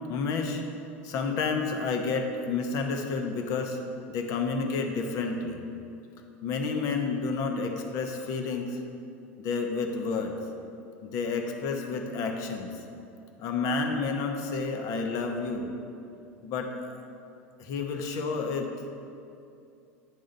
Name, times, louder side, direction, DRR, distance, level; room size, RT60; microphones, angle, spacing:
voice 1, 0.1-0.6 1.0-3.8 4.1-5.6 6.4-8.8 9.4-10.3 11.0-12.7 13.4-15.7 16.4-17.0 17.6-18.7, left 4 dB, 55° left, 4 dB, 0.9 m, -30 dB
9.6 x 3.7 x 5.4 m, 2.6 s
hypercardioid pair, 95°, 7 cm